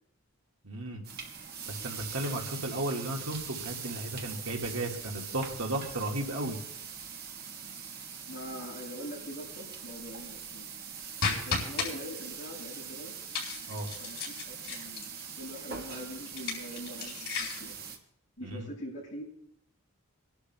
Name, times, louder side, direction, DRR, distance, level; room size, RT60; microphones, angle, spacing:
voice 1, 0.6-1.0 1.7-6.6 13.7-13.9 18.4-18.7, right 1 dB, 70° right, 1 dB, 1.7 m, -34 dB
sound 1, 1.0-18.0, right 6 dB, 45° right, 1.3 m, -42 dB
voice 2, 8.3-10.7 11.3-13.1 14.0-17.8 18.4-19.2, equal, 60° left, -4 dB, 5.6 m, -43 dB
sound 2, 11.2-11.9 13.3-15.2 16.3-17.7, left 4 dB, 85° left, 4.7 m, -34 dB
28.0 x 11.5 x 2.3 m, 0.71 s
head